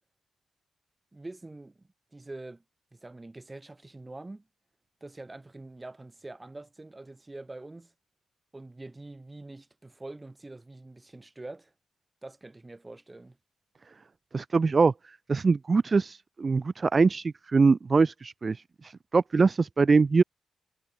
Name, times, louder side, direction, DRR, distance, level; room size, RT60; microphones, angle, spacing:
voice 1, 1.1-1.8 2.1-2.6 2.9-4.4 5.0-7.9 8.5-11.7 12.2-13.4, right 2 dB, 25° right, 7.9 m, -45 dB
voice 2, 14.3-20.2, right 4 dB, 45° right, 0.5 m, -23 dB
hypercardioid pair, 40°, 0 cm